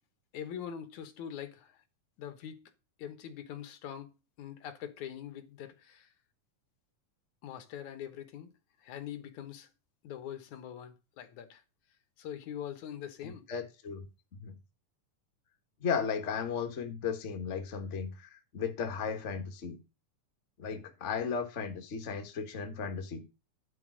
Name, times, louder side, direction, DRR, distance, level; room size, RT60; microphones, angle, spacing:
voice 1, 0.3-1.7 2.2-2.6 3.0-6.1 7.4-8.5 8.8-9.7 10.0-11.6 12.2-13.4, left 9 dB, 70° left, 2.4 m, -43 dB
voice 2, 13.2-14.1 14.3-14.5 15.8-19.8 20.6-23.3, left 6 dB, 55° left, 0.8 m, -35 dB
10.5 x 4.5 x 6.2 m
omnidirectional pair, 3.7 m